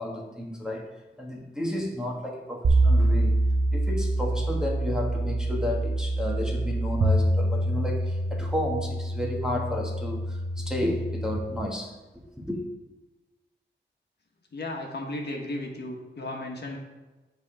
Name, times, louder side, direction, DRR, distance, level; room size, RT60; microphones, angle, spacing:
voice 1, 0.0-3.4 3.7-12.6, left 1 dB, 5° right, -3 dB, 1.4 m, -32 dB
sound 1, 2.6-11.4, right 1 dB, 60° right, 0.9 m, -25 dB
voice 2, 14.5-16.8, left 1 dB, 55° left, 0 dB, 1.4 m, -34 dB
9.5 x 3.5 x 4.9 m, 1.1 s
wide cardioid pair, 85°, 20 cm